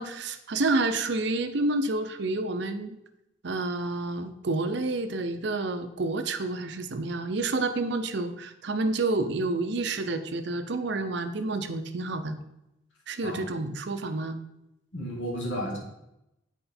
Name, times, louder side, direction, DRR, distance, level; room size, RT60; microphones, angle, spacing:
voice 1, 0.0-3.0 3.4-12.4 13.1-14.4, right 2 dB, 60° right, 9 dB, 0.6 m, -29 dB
voice 2, 14.9-15.8, equal, 65° left, -2 dB, 1.9 m, -32 dB
7.9 x 4.3 x 4.3 m, 0.87 s
head